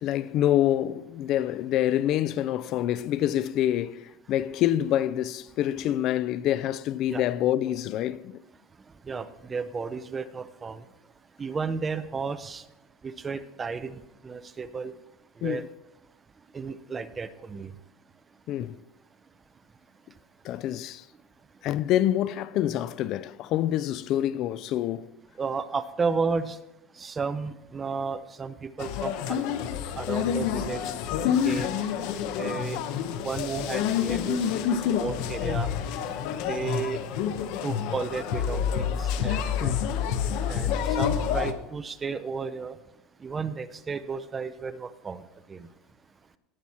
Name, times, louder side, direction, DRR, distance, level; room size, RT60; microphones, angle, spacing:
voice 1, 0.0-8.4 15.4-15.7 18.5-18.8 20.4-21.1 21.6-25.1 39.6-39.8, left 12 dB, 45° left, 0.3 m, -26 dB
voice 2, 9.1-10.8 11.4-12.6 13.0-14.9 15.4-15.6 16.5-17.7 25.4-26.6 27.0-29.4 29.9-30.8 31.4-31.8 32.4-32.8 33.2-35.7 36.5-37.0 37.6-39.8 40.5-42.8 43.2-45.2 45.5-45.7, right 5 dB, 20° right, 0.5 m, -33 dB
sound 1, 28.8-41.5, left 8 dB, 60° left, 0.8 m, -28 dB
17.5 x 6.1 x 4.3 m
supercardioid pair, 150°, 0 cm